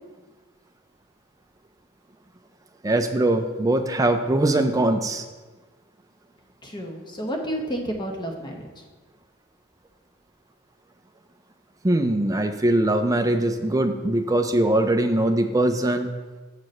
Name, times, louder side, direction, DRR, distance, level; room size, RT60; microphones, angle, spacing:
voice 1, 2.8-5.2 11.8-16.1, right 1 dB, 15° right, 6 dB, 0.4 m, -21 dB
voice 2, 6.6-8.7, equal, 20° left, 2 dB, 0.9 m, -30 dB
7.5 x 4.7 x 5.3 m, 1.3 s
head